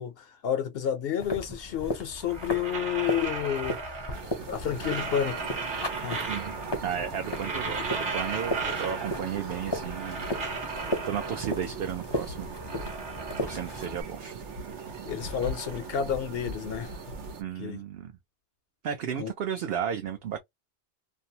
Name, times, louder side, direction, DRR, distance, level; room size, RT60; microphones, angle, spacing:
voice 1, 0.0-3.8 4.5-5.5 6.0-6.3 7.7-7.8 15.0-17.0 17.6-17.8 19.2-19.3, left 9 dB, 65° left, 0.7 m, -30 dB
sound 1, 1.2-14.0, left 1 dB, 30° left, 0.5 m, -37 dB
sound 2, 2.2-4.4 4.6-6.8 7.1-9.4 9.6-11.7 12.2-14.2 14.5-16.7, right 4 dB, 50° right, 1.1 m, -36 dB
sound 3, 4.1-17.4, right 4 dB, 85° right, 1.1 m, -40 dB
voice 2, 6.8-10.3 10.6-12.5 13.4-14.4 17.4-18.1 18.8-20.4, right 8 dB, 65° right, 0.7 m, -34 dB
2.6 x 2.0 x 2.7 m
omnidirectional pair, 1.2 m